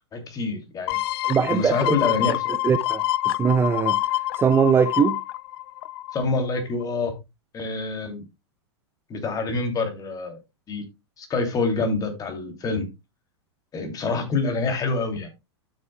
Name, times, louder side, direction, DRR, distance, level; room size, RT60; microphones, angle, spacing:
voice 1, 0.1-1.0 1.5-2.5 6.1-7.2 7.5-8.2 9.1-10.4 10.7-10.8 11.2-12.9 13.7-15.3, left 3 dB, 25° left, 2.8 m, -26 dB
sound 1, 0.9-6.4 6.8-6.9, left 16 dB, 55° left, 0.4 m, -27 dB
voice 2, 1.2-1.9 2.3-5.2, right 6 dB, 15° right, 0.6 m, -22 dB
12.5 x 6.9 x 2.3 m
hypercardioid pair, 115°, 15 cm